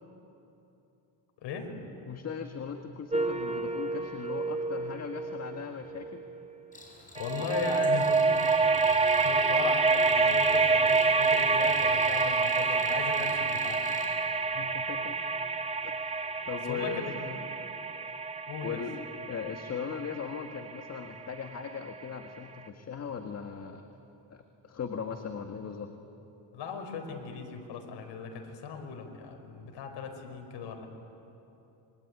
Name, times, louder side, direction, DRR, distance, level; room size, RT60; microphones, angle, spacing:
voice 1, 1.4-1.9 7.2-8.5 8.9-13.9 16.6-17.1 18.5-18.8 26.5-30.9, left 5 dB, 70° left, 4 dB, 4.8 m, -38 dB
voice 2, 2.0-6.2 13.9-15.2 15.8-16.0 16.5-17.4 18.6-19.0 19.3-23.8 24.3-25.9, left 6 dB, 35° left, 5 dB, 1.7 m, -39 dB
sound 1, 3.1-6.4 7.2-22.0, right 4 dB, 15° right, 1.3 m, -28 dB
Cricket, 6.7-14.1, left 1 dB, 15° left, 5.9 m, -50 dB
26.0 x 23.5 x 9.6 m, 3.0 s
cardioid pair, 110°, 44 cm